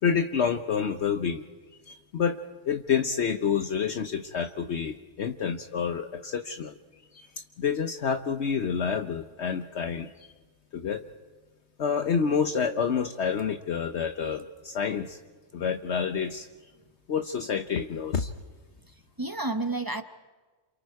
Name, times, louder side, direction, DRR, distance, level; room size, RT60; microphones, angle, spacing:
voice 1, 0.0-1.4 1.9-2.4 2.7-6.8 7.1-7.3 7.6-10.3 10.7-11.1 11.8-15.2 15.5-16.5 17.1-18.3, left 6 dB, 65° left, 8 dB, 1.1 m, -28 dB
voice 2, 18.9-20.0, right 2 dB, 20° right, 9 dB, 0.8 m, -31 dB
29.0 x 27.5 x 4.8 m, 1.3 s
omnidirectional pair, 1.3 m